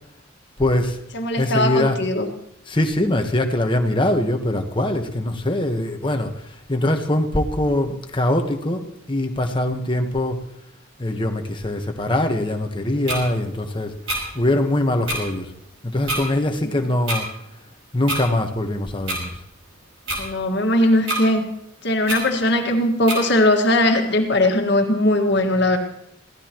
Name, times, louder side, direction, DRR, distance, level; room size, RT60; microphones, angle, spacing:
voice 1, 0.6-1.0 1.4-2.0 2.7-10.4 11.0-13.9 14.3-15.5 15.8-17.3 17.9-19.3, left 1 dB, 25° left, 4 dB, 1.2 m, -22 dB
voice 2, 1.1-2.3 16.6-16.7 20.2-21.4 21.8-25.8, left 1 dB, 55° left, 3 dB, 1.8 m, -19 dB
sound 1, 13.1-13.2 14.1-14.2 15.1-15.2 16.1-16.2 17.1-17.2 18.1-18.2 19.1-19.2 20.1-20.2 21.1-21.2 22.1-22.2 23.1-23.2, right 1 dB, 65° right, 5.5 m, -25 dB
23.0 x 16.5 x 3.0 m, 0.77 s
head